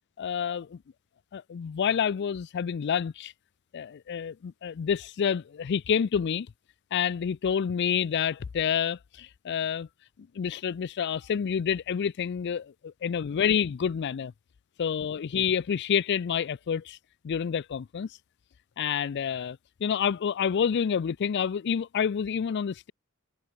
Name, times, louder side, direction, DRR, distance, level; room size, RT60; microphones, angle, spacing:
voice 1, 0.2-0.8 1.3-3.3 3.7-6.5 6.9-9.9 10.3-14.3 14.8-17.0 17.2-18.2 18.8-22.9, left 7 dB, 55° left, 0.4 m, -28 dB
head